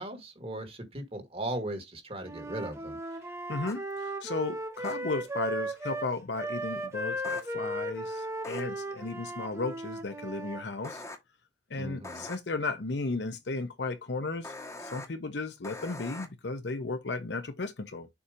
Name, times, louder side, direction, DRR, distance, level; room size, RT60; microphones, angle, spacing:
voice 1, 0.0-3.0 11.8-12.3, right 1 dB, 30° right, 1.8 m, -37 dB
Wind instrument woodwind instrument, 2.2-6.1 6.4-10.7, right 1 dB, 15° right, 1.1 m, -36 dB
voice 2, 3.5-11.0 11.7-14.5 14.8-18.1, left 3 dB, 70° left, 0.8 m, -35 dB
sound 1, 3.7-3.8 4.8-4.9 7.2-7.4 8.4-8.6 10.8-11.2 12.0-12.4 14.4-15.1 15.6-16.3, left 2 dB, 15° left, 1.3 m, -42 dB
7.0 x 2.8 x 5.0 m
head